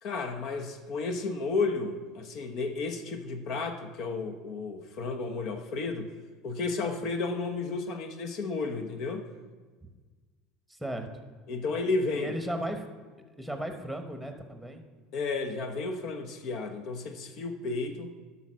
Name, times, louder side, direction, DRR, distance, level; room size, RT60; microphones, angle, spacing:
voice 1, 0.0-6.1 6.4-9.2 11.5-12.3 15.1-18.1, left 3 dB, 60° left, 5 dB, 1.0 m, -32 dB
voice 2, 10.7-11.1 12.1-12.8 13.4-14.8, right 1 dB, ahead, 5 dB, 1.1 m, -35 dB
11.0 x 4.2 x 6.3 m, 1.4 s
supercardioid pair, 110°, 0 cm